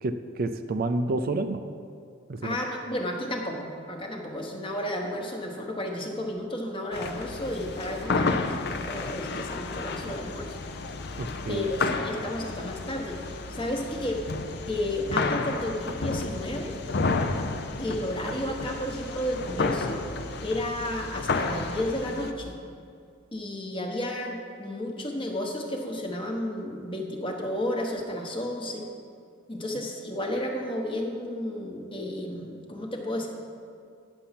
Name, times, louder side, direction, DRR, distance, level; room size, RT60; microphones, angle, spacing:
voice 1, 0.0-1.6 2.3-2.6 11.2-11.6, right 2 dB, 45° right, 8 dB, 0.4 m, -29 dB
voice 2, 2.4-10.5 11.5-13.2 13.5-14.2 14.7-16.8 17.8-20.0 20.4-22.5 23.3-28.9 29.5-33.3, left 1 dB, 25° left, 1 dB, 1.1 m, -32 dB
sound 1, 6.9-22.3, left 3 dB, 55° left, 0.6 m, -31 dB
9.9 x 7.0 x 5.8 m, 2.3 s
head